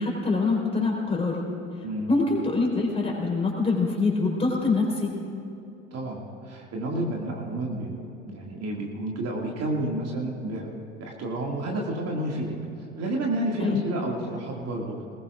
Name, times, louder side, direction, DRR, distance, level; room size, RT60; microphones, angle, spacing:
voice 1, 0.0-1.4 2.1-5.1 13.6-13.8, left 3 dB, 15° left, -2 dB, 4.2 m, -24 dB
voice 2, 5.9-10.7 11.0-12.6 13.0-15.0, right 1 dB, 40° right, -1 dB, 2.3 m, -30 dB
21.0 x 19.5 x 2.5 m, 2.7 s
figure-of-eight pair, 65°, 37 cm